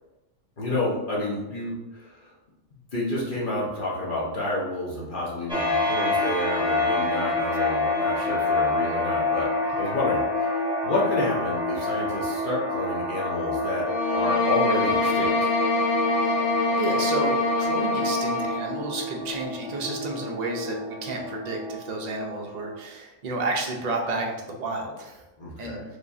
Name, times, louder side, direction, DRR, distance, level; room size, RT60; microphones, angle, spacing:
voice 1, 0.6-2.2 2.9-9.5 9.8-10.2 10.8-13.8 14.1-15.5 25.4-25.8, left 1 dB, 40° left, -6 dB, 1.0 m, -29 dB
sound 1, 5.5-22.7, left 2 dB, 5° right, 1.0 m, -28 dB
sound 2, 13.8-18.7, left 2 dB, 85° left, 1.2 m, -24 dB
voice 2, 16.7-25.2 25.6-25.8, right 3 dB, 55° right, 0 dB, 0.4 m, -31 dB
5.1 x 3.1 x 2.7 m, 1.1 s
omnidirectional pair, 1.6 m